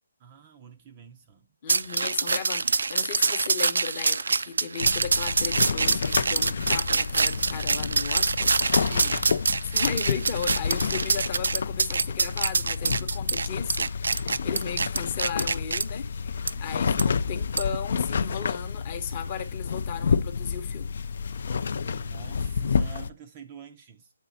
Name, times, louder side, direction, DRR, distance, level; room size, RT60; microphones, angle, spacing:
voice 1, 0.2-1.5 8.8-9.4 21.8-24.1, right 7 dB, 20° right, 0.5 m, -47 dB
voice 2, 1.6-8.5 9.7-20.9, left 7 dB, 20° left, 0.8 m, -36 dB
sound 1, 1.7-15.8 16.5-16.6 17.0-17.1 17.6-17.8, right 4 dB, 75° right, 0.4 m, -25 dB
sound 2, 4.8-23.1, left 5 dB, 45° left, 0.4 m, -29 dB
8.2 x 4.2 x 4.0 m
hypercardioid pair, 175°, 0 cm